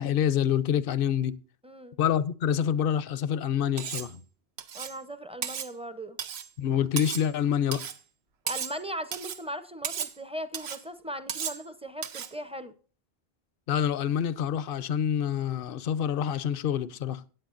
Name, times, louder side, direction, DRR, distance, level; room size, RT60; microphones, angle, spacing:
voice 1, 0.0-1.4 2.0-4.2 6.6-7.8 13.7-17.2, left 9 dB, 65° left, 0.8 m, -27 dB
voice 2, 1.6-2.0 4.7-6.2 8.4-12.7, equal, 5° right, 0.6 m, -38 dB
Cutlery silverware, 3.8-4.1 4.6-5.0 5.4-5.7 6.2-6.5 7.0-7.3 7.7-8.0 8.5-8.8 9.1-9.4 9.8-10.2 10.5-10.8 11.3-11.6 12.0-12.3, right 8 dB, 85° right, 1.1 m, -35 dB
17.0 x 8.8 x 2.5 m
omnidirectional pair, 1.0 m